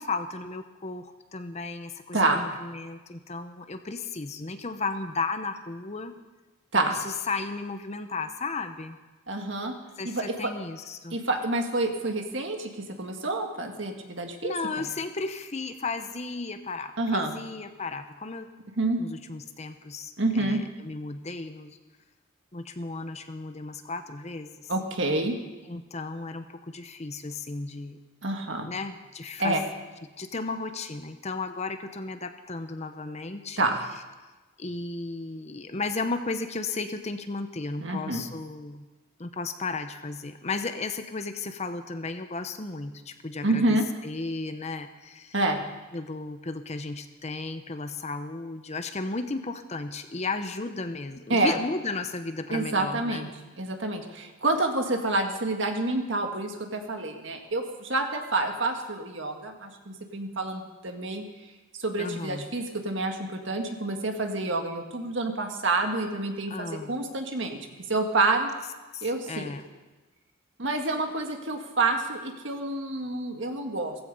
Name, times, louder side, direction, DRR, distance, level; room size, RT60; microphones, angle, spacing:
voice 1, 0.0-6.1 7.0-9.0 10.0-11.2 14.4-18.5 19.0-21.8 22.5-24.7 25.7-28.0 28.6-29.6 30.2-33.6 34.6-38.8 39.2-43.8 44.0-45.4 45.9-53.2 62.0-62.5 66.5-66.9 68.9-69.7, left 3 dB, 30° left, 9 dB, 0.8 m, -34 dB
voice 2, 2.1-2.4 6.7-7.0 9.3-9.7 10.0-10.5 11.1-14.9 17.0-17.3 18.8-19.0 20.2-20.6 24.7-25.4 28.2-28.7 29.4-29.6 33.6-33.8 37.8-38.2 43.4-43.9 45.3-45.6 51.3-51.6 52.5-53.3 53.6-61.2 61.8-67.6 67.9-68.5 69.0-69.5 70.6-74.0, right 2 dB, 60° right, 4 dB, 1.8 m, -28 dB
15.5 x 15.5 x 5.4 m, 1.2 s
head